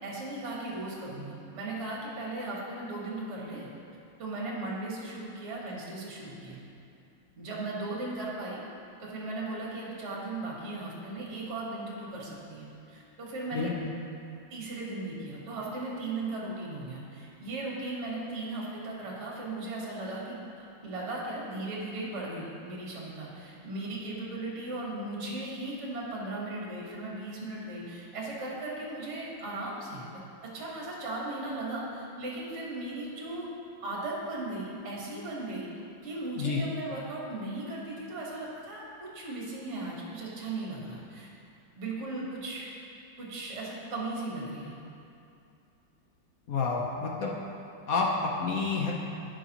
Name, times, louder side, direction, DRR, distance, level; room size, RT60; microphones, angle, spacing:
voice 1, 0.0-3.7 4.2-6.6 7.4-8.6 9.0-13.7 14.5-33.5 33.8-35.7 36.0-41.3 41.7-42.7 43.2-44.8, right 2 dB, 35° right, -4 dB, 1.5 m, -37 dB
voice 2, 13.5-13.9 36.4-36.6 46.5-47.3 47.9-48.9, left 4 dB, 60° left, -2 dB, 0.9 m, -29 dB
15.0 x 5.3 x 2.9 m, 2.6 s
omnidirectional pair, 2.3 m